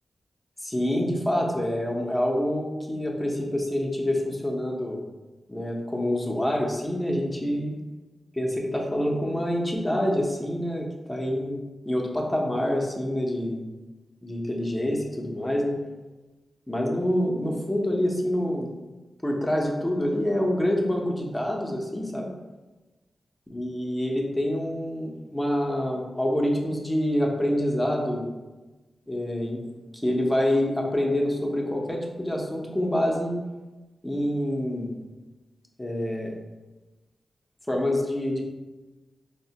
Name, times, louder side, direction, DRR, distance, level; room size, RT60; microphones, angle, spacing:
voice 1, 0.6-5.0 5.5-7.8 8.3-13.6 14.2-15.8 16.7-18.7 19.2-22.3 23.5-28.3 29.1-29.6 29.9-33.3 34.0-35.0 35.8-36.3 37.7-38.4, left 1 dB, 10° left, -1 dB, 0.7 m, -26 dB
4.4 x 2.1 x 2.8 m, 1.2 s
cardioid pair, 70°, 0 cm